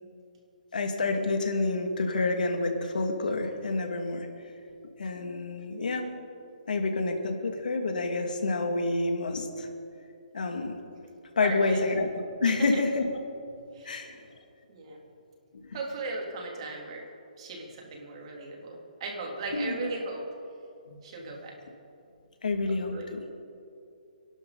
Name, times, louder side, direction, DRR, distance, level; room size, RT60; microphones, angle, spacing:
voice 1, 0.7-4.3 5.0-6.1 6.7-9.7 10.3-10.8 11.4-12.1 12.4-13.1 13.8-14.1 19.5-19.9 20.9-21.0 22.4-23.2, left 3 dB, 80° left, 4 dB, 2.3 m, -28 dB
voice 2, 11.4-11.9 12.5-12.8 13.7-14.3 14.7-15.0 15.7-17.0 17.4-20.2 21.0-21.5 22.7-23.1, right 3 dB, 45° right, -1 dB, 3.4 m, -37 dB
27.0 x 12.0 x 4.1 m, 2.6 s
hypercardioid pair, 155°, 4 cm